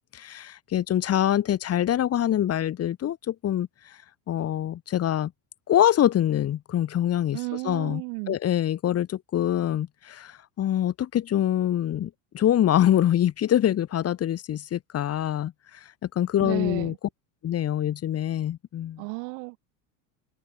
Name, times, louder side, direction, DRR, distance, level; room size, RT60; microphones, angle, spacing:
voice 1, 0.1-3.7 4.3-5.3 5.7-7.4 7.6-8.0 8.3-15.5 16.1-16.9 17.4-19.0, left 11 dB, 35° left, 3.0 m, -24 dB
voice 2, 7.3-8.4 16.4-17.0 19.0-19.6, right 40 dB or more, 70° right, 4.5 m, -33 dB
open air
supercardioid pair, 135°, 41 cm